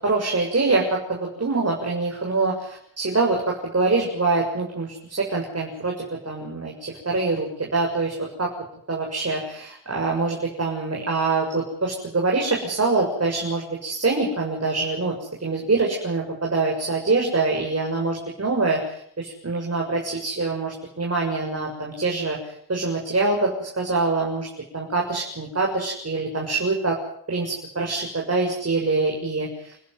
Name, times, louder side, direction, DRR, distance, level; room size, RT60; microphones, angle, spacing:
voice 1, 0.0-8.5 8.9-15.1 15.4-18.8 19.2-22.4 22.7-24.5 24.7-27.0 27.3-29.5, right 3 dB, 35° right, -1 dB, 7.0 m, -24 dB
29.0 x 14.5 x 7.9 m, 0.67 s
cardioid pair, 80°, 45 cm